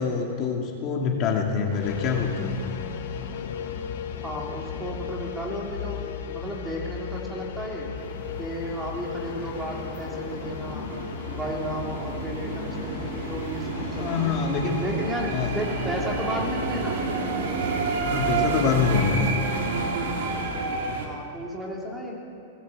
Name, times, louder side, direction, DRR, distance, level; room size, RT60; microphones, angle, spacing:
voice 1, 0.0-2.6 14.0-14.8 15.3-15.5 18.0-19.2, left 6 dB, 25° left, 0 dB, 2.2 m, -25 dB
sound 1, 1.7-20.6, left 8 dB, 45° left, 1.9 m, -39 dB
sound 2, 1.8-20.8, left 7 dB, 70° left, 2.9 m, -39 dB
voice 2, 4.2-7.9 8.4-10.8 11.2-14.4 14.7-17.1 19.1-19.2 21.0-22.1, equal, 5° right, -1 dB, 2.9 m, -33 dB
sound 3, 8.0-21.1, right 4 dB, 60° right, 3.7 m, -30 dB
19.0 x 18.5 x 8.6 m, 2.8 s
supercardioid pair, 175°, 0 cm